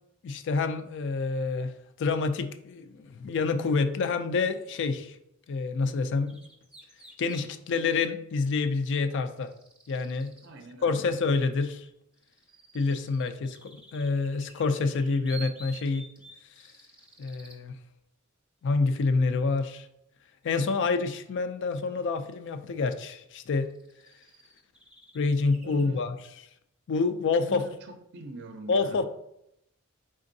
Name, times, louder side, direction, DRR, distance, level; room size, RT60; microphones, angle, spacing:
voice 1, 0.2-5.2 5.5-6.4 7.2-9.5 9.9-10.3 10.8-11.9 12.7-16.1 16.6-16.7 17.2-17.7 18.6-19.9 20.4-23.7 25.1-26.4 26.9-27.6 28.7-29.0, left 4 dB, 55° left, 10 dB, 0.4 m, -27 dB
sound 1, 6.3-7.5 9.1-10.5 11.9-17.6 21.9-22.0 23.1-23.2 23.7-25.9, right 3 dB, 5° right, 0.6 m, -51 dB
voice 2, 10.4-11.0 25.6-26.0 27.4-29.0, right 2 dB, 55° right, 6 dB, 0.5 m, -44 dB
5.2 x 3.7 x 2.6 m, 0.78 s
head